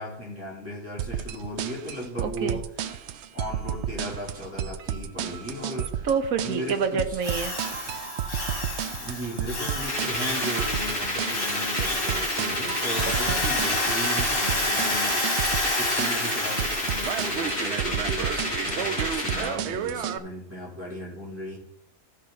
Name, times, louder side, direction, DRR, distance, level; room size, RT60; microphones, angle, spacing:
voice 1, 0.0-2.6 3.0-3.1 3.3-6.1 6.4-7.2 7.9-8.0 9.0-21.6, equal, 10° right, -6 dB, 3.7 m, -36 dB
sound 1, 1.0-20.2, right 9 dB, 90° right, 0.6 m, -32 dB
voice 2, 2.2-2.6 6.0-7.6 13.1-13.4, right 6 dB, 60° right, 9 dB, 1.2 m, -28 dB
Drill, 7.2-17.6, left 2 dB, 50° left, 2.5 m, -30 dB
sound 2, 9.8-19.5, left 1 dB, 30° left, 4.2 m, -30 dB
14.5 x 5.2 x 4.1 m, 0.77 s
omnidirectional pair, 1.8 m